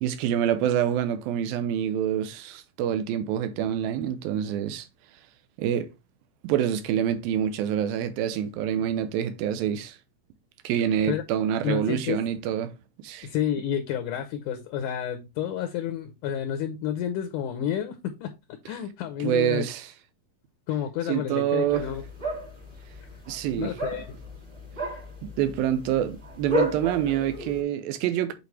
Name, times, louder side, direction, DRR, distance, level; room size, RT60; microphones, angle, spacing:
voice 1, 0.0-4.9 5.6-5.9 6.4-10.0 10.6-12.7 13.0-13.3 19.2-19.9 21.1-21.9 23.3-23.7 25.2-28.3, right 10 dB, 80° right, 2.6 m, -26 dB
voice 2, 11.6-12.2 13.2-19.7 20.7-22.1 23.6-24.1 24.8-24.9, left 10 dB, 75° left, 2.0 m, -30 dB
sound 1, 21.7-27.6, equal, 15° right, 1.3 m, -33 dB
8.4 x 4.3 x 3.2 m
omnidirectional pair, 4.3 m